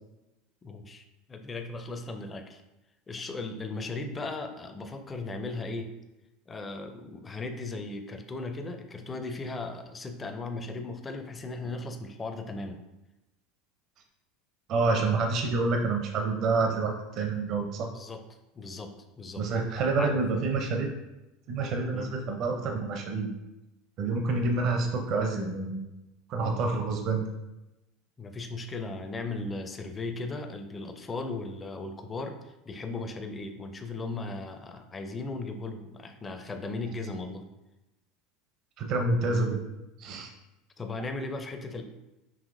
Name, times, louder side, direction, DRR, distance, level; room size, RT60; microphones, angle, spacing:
voice 1, 0.6-1.0 1.3-2.6 3.1-5.9 6.5-12.8 17.9-18.2 18.6-19.5 20.0-20.2 21.9-22.1 28.2-32.4 32.6-37.5 40.8-41.8, left 3 dB, 20° left, 6 dB, 0.5 m, -37 dB
voice 2, 14.7-17.9 19.4-20.9 21.5-23.3 24.0-25.8 26.3-27.3 38.8-39.6 40.0-40.3, right 3 dB, 50° right, 3 dB, 0.6 m, -28 dB
5.6 x 2.8 x 2.6 m, 0.98 s
supercardioid pair, 110°, 0 cm